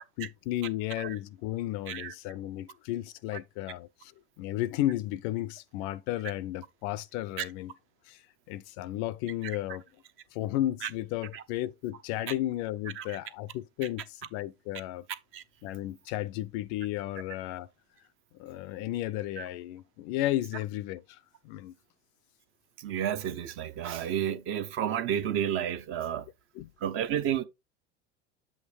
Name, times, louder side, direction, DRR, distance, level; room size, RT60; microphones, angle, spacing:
voice 1, 0.0-4.1 4.4-7.7 8.1-8.2 8.5-9.8 10.3-15.0 15.6-17.7 18.4-21.2 21.4-21.7 26.6-26.7, left 14 dB, 40° left, 0.5 m, -33 dB
voice 2, 22.8-26.3 26.8-27.4, right 9 dB, 35° right, 0.7 m, -31 dB
7.9 x 2.7 x 4.8 m
figure-of-eight pair, 75°, 35 cm